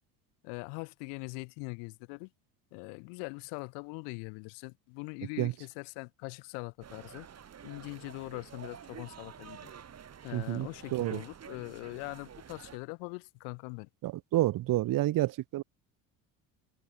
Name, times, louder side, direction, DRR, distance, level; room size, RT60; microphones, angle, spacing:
voice 1, 0.4-2.3 2.7-7.3 7.6-9.7 10.2-13.9, left 40 dB or more, 85° left, 1.5 m, -42 dB
sound 1, 6.8-12.8, right 8 dB, 40° right, 5.9 m, -49 dB
voice 2, 10.3-11.2 14.0-15.6, right 15 dB, 55° right, 1.1 m, -29 dB
supercardioid pair, 95°, 40 cm